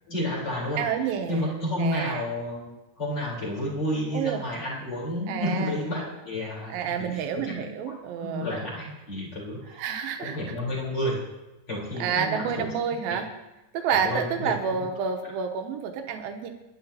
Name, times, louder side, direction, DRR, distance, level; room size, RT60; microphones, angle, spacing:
voice 1, 0.1-0.9 1.3-2.7 3.0-7.6 8.2-9.8 10.2-11.2 11.7-12.7 13.1-13.2 13.9-14.5, left 1 dB, 25° left, -5 dB, 4.1 m, -31 dB
voice 2, 0.7-1.5 1.8-2.2 4.1-4.4 5.3-5.8 6.7-8.5 9.8-10.4 12.0-13.3 13.7-16.5, right 7 dB, 75° right, 5 dB, 2.3 m, -29 dB
23.5 x 11.5 x 2.9 m, 1.0 s
omnidirectional pair, 5.2 m